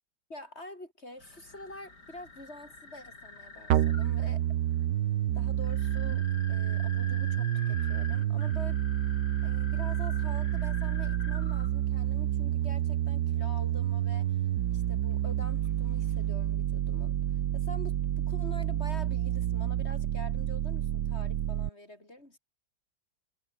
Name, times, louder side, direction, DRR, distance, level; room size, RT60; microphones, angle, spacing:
voice 1, 0.3-4.6 5.3-6.2 6.5-8.8 9.4-14.4 14.7-17.2 17.5-22.4, left 1 dB, 35° left, 8.3 m, -46 dB
sound 1, 1.2-16.3, left 3 dB, 65° left, 5.7 m, -48 dB
sound 2, 3.7-21.7, right 12 dB, 70° right, 1.4 m, -29 dB
omnidirectional pair, 2.0 m